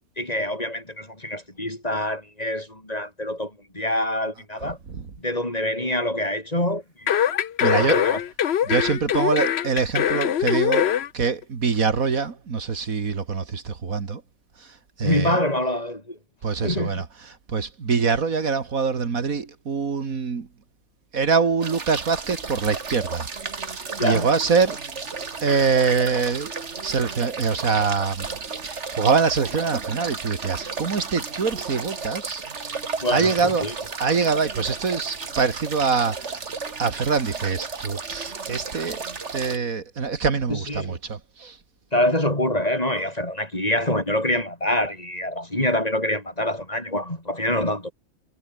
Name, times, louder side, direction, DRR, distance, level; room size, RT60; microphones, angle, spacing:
voice 1, 0.2-4.8 5.2-7.1 7.6-8.2 15.0-16.2 16.6-17.1 24.0-24.3 33.0-33.8 40.5-41.0 41.9-47.9, left 1 dB, 25° left, 5.4 m, -25 dB
sound 1, 7.1-11.1 11.4-11.5, left 9 dB, 55° left, 0.9 m, -22 dB
voice 2, 7.6-8.0 8.6-10.9 11.1-14.2 15.0-15.4 16.4-17.0 17.5-20.5 21.1-23.3 23.7-24.8 25.4-26.5 26.8-28.3 28.6-32.4 33.1-33.7 34.0-36.4 36.8-39.0 39.3-41.5, right 5 dB, 75° right, 2.4 m, -24 dB
sound 2, 21.6-39.6, right 4 dB, 55° right, 2.3 m, -34 dB
omnidirectional pair, 1.5 m